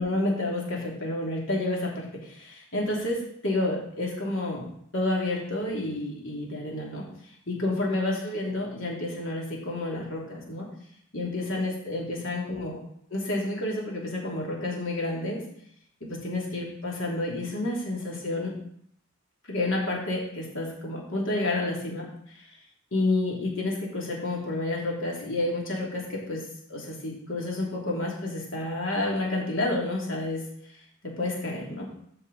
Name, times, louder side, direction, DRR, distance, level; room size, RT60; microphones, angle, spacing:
voice 1, 0.0-7.0 7.5-10.7 11.1-12.8 13.1-15.4 16.2-18.5 19.5-22.5 22.9-26.4 26.7-30.4 31.2-31.9, left 2 dB, 75° left, -3 dB, 2.9 m, -30 dB
13.5 x 5.4 x 4.1 m, 0.68 s
head